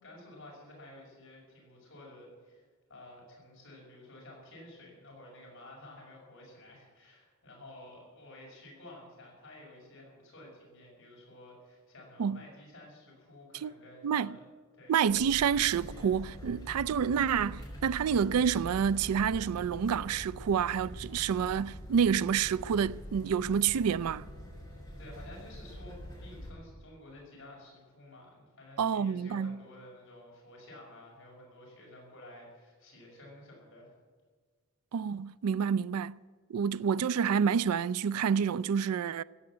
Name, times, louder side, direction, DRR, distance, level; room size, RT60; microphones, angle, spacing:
voice 1, 0.0-14.4 14.7-14.9 25.0-33.9, left 1 dB, 60° left, 5.7 m, -52 dB
voice 2, 14.9-24.3 28.8-29.6 34.9-36.2 36.5-39.2, right 7 dB, 85° right, 0.4 m, -28 dB
sound 1, 15.1-26.5, equal, 15° left, 5.3 m, -45 dB
15.5 x 8.6 x 9.8 m
head